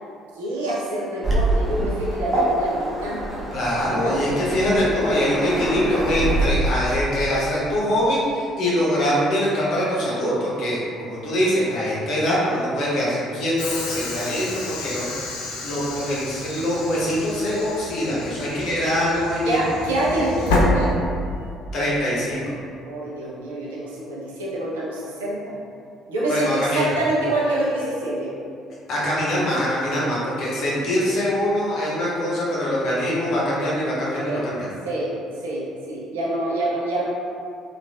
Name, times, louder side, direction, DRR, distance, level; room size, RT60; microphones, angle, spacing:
voice 1, 0.3-3.4 4.0-4.4 19.5-20.9 22.8-25.5 26.1-28.3 34.1-34.5 34.8-35.1 35.4-37.1, right 1 dB, 75° right, -7 dB, 0.5 m, -26 dB
Waves surf, 1.2-6.5, right 1 dB, 25° right, 0.6 m, -25 dB
voice 2, 3.5-15.1 15.6-19.6 21.7-22.5 26.2-26.9 28.9-34.7, equal, 55° left, -7 dB, 0.8 m, -23 dB
Train / Sliding door, 13.6-21.5, left 2 dB, 70° left, 0.3 m, -28 dB
3.1 x 2.4 x 2.3 m, 2.4 s
figure-of-eight pair, 50°, 0 cm